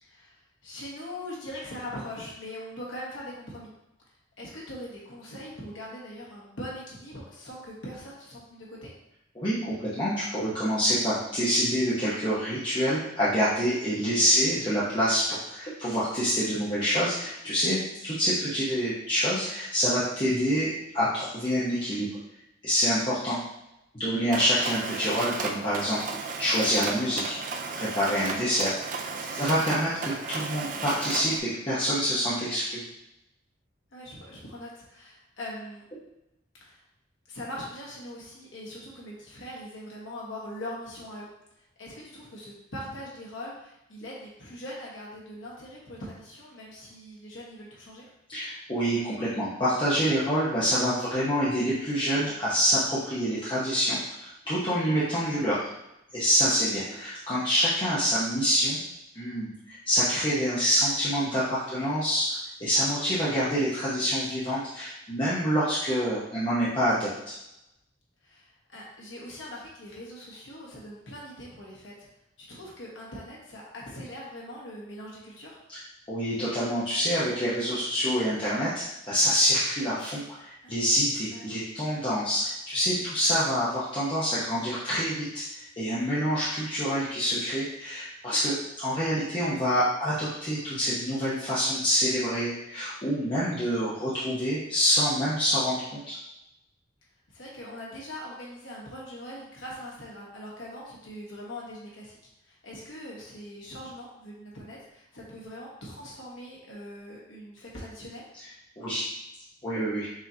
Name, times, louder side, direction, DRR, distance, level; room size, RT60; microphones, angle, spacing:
voice 1, 0.0-3.7 4.4-8.9 14.2-14.4 29.2-29.6 33.9-35.8 36.6-36.8 37.3-41.3 41.8-48.1 61.7-61.9 68.2-71.9 72.4-75.6 80.6-80.7 81.3-81.4 82.9-83.0 97.3-102.2 102.4-108.3, left 1 dB, 75° left, -5 dB, 1.3 m, -41 dB
voice 2, 9.3-17.8 18.0-22.1 22.6-23.4 23.9-27.2 27.7-28.7 29.3-32.8 48.3-55.7 56.1-58.8 59.1-62.3 62.6-67.3 75.7-75.8 76.1-96.2 108.8-109.1 109.6-110.1, equal, 25° left, -11 dB, 1.0 m, -26 dB
Mechanisms, 24.3-31.4, right 4 dB, 40° right, 0.4 m, -35 dB
6.2 x 3.0 x 2.8 m, 0.86 s
head